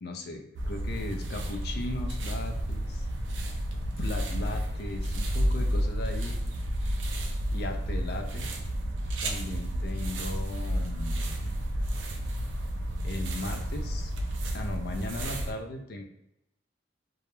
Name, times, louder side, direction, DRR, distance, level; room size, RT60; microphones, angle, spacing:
voice 1, 0.0-3.1 4.0-6.4 7.5-8.5 9.2-11.3 13.0-14.1 14.5-16.0, left 2 dB, 55° left, 4 dB, 0.4 m, -37 dB
sound 1, 0.5-15.5, equal, 80° right, 0.4 m, -31 dB
2.3 x 2.0 x 2.9 m, 0.84 s
head